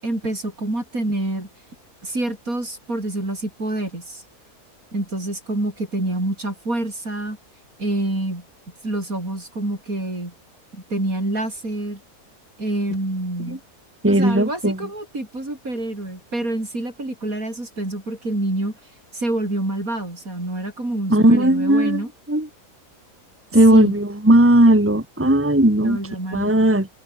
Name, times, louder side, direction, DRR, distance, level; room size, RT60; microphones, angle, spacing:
voice 1, 0.0-1.5 2.0-4.2 4.9-7.4 7.8-8.4 8.8-10.3 10.7-12.0 12.6-13.6 14.1-18.7 19.1-22.1 23.5-23.9 25.8-26.5, right 2 dB, 65° right, 8.2 m, -27 dB
voice 2, 14.0-14.8 21.1-22.0 22.3-22.5 23.5-26.0 26.3-26.9, right 1 dB, 10° right, 2.0 m, -16 dB
omnidirectional pair, 1.6 m